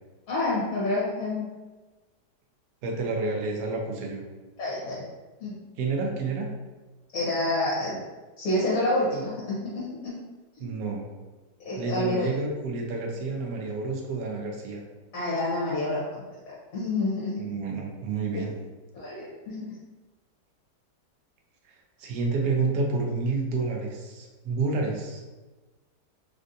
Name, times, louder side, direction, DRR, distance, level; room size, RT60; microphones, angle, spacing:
voice 1, 0.3-1.5 4.6-5.0 5.4-5.6 7.1-8.0 8.4-10.1 10.6-10.7 11.7-12.3 15.1-16.2 16.7-17.4 18.3-18.4 18.9-19.7, left 2 dB, 65° left, -6 dB, 1.1 m, -28 dB
voice 2, 2.8-4.2 5.8-6.5 10.6-11.1 11.8-14.8 17.4-18.5 22.0-25.2, right 3 dB, 70° right, 0 dB, 1.0 m, -29 dB
3.4 x 2.5 x 2.6 m, 1.2 s
omnidirectional pair, 1.8 m